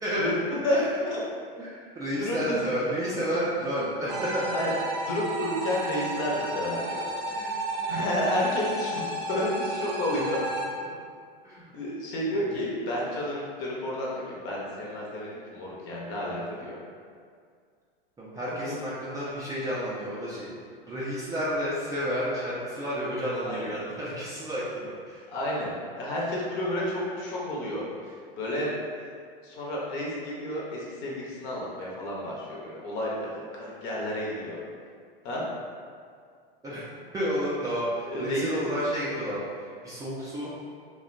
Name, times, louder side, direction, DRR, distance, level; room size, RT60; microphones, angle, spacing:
voice 1, 0.2-0.8 1.1-1.2 2.1-2.5 4.5-4.7 5.0-7.0 7.9-9.0 9.3-10.4 11.7-16.7 18.6-18.7 23.4-23.7 25.3-28.7 29.0-29.1 29.4-34.6 35.2-35.4 38.1-38.6, left 1 dB, 40° left, -4 dB, 0.7 m, -31 dB
voice 2, 1.6-4.5 7.3-7.6 11.4-11.6 12.3-12.6 18.2-20.5 20.8-25.2 36.6-36.8 37.1-40.5, equal, 10° right, -9 dB, 0.4 m, -31 dB
sound 1, 4.1-10.7, right 2 dB, 65° right, 0.5 m, -32 dB
2.7 x 2.1 x 2.5 m, 2.1 s
hypercardioid pair, 95°, 29 cm